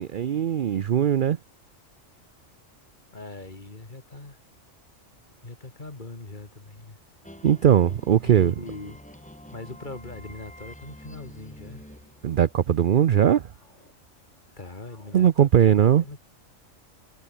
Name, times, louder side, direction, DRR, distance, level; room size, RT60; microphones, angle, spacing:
voice 1, 0.0-1.4 7.4-8.5 12.2-13.5 15.1-16.0, right 9 dB, 55° right, 0.6 m, -20 dB
voice 2, 3.1-4.4 5.4-7.0 8.2-9.0 9.5-11.8 14.6-16.2, left 2 dB, 35° left, 2.9 m, -41 dB
sound 1, 7.2-12.8, left 1 dB, 5° left, 1.6 m, -46 dB
sound 2, 10.8-11.3 11.9-12.6 13.1-14.0 14.2-15.3, left 2 dB, 60° left, 6.1 m, -62 dB
omnidirectional pair, 1.4 m